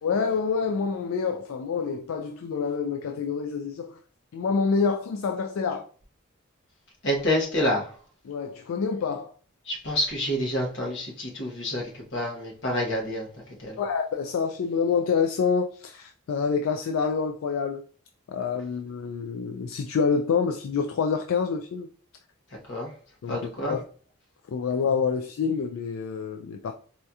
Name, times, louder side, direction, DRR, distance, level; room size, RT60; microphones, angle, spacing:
voice 1, 0.0-4.0 4.3-5.9 8.3-9.3 13.8-17.8 18.3-21.9 23.2-23.8 24.5-26.7, left 5 dB, 75° left, 0.3 m, -27 dB
voice 2, 7.0-7.9 9.7-13.3 13.6-13.8 22.7-22.9 23.3-23.8, left 1 dB, 55° left, 1.1 m, -28 dB
4.3 x 2.7 x 2.3 m
head